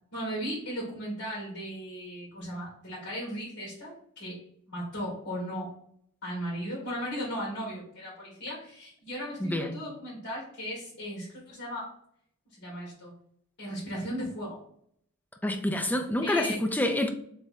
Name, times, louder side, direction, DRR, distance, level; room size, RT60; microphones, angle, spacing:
voice 1, 0.1-4.4 4.7-5.7 6.2-11.9 12.6-13.1 13.6-14.6 16.2-16.6, equal, 50° left, 1.6 m, -36 dB
voice 2, 9.4-9.8 15.4-17.1, left 1 dB, 10° left, 0.5 m, -27 dB
3.6 x 3.3 x 4.2 m
head